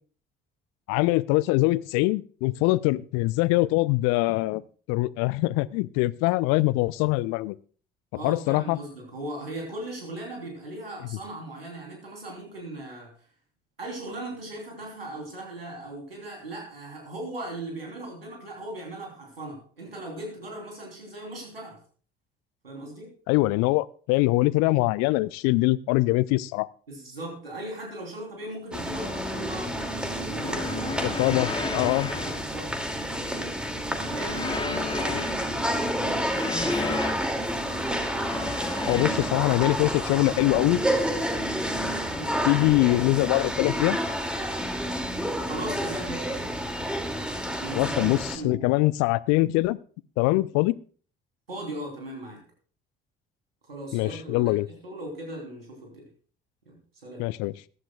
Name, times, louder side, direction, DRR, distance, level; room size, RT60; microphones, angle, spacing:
voice 1, 0.9-4.6 4.9-7.6 8.2-8.8 23.3-26.7 31.2-32.1 38.9-40.8 42.4-44.0 47.7-49.8 50.2-50.8 53.9-54.7 57.2-57.5, left 20 dB, 60° left, 21 dB, 0.6 m, -23 dB
voice 2, 8.1-13.1 13.8-21.8 22.6-23.1 26.9-31.2 31.6-32.7 33.2-33.5 34.1-37.1 42.1-42.4 45.4-46.3 47.6-48.6 50.3-50.4 51.5-52.4 53.7-56.1 56.7-57.2, right 1 dB, 90° right, 1 dB, 3.5 m, -38 dB
sound 1, 28.7-48.4, equal, 5° right, 2.4 m, -29 dB
sound 2, 30.3-32.9 34.0-35.6 36.2-37.3 38.2-39.7 41.0-41.1 42.9-43.0 44.5-45.2, left 4 dB, 15° left, 0.7 m, -35 dB
21.5 x 11.0 x 2.3 m, 0.41 s
figure-of-eight pair, 50°, 29 cm